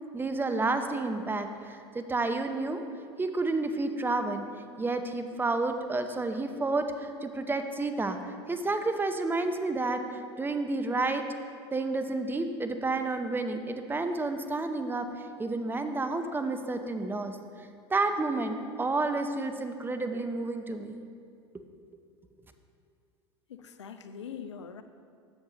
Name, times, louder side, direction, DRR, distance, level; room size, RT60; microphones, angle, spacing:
voice 1, 0.1-2.8 3.2-4.4 4.8-11.2 11.7-15.0 15.4-17.4 17.9-21.0, right 3 dB, 15° right, 7 dB, 0.6 m, -30 dB
voice 2, 23.5-24.8, left 7 dB, 85° left, 9 dB, 0.4 m, -42 dB
7.3 x 7.0 x 3.9 m, 2.5 s
hypercardioid pair, 80°, 14 cm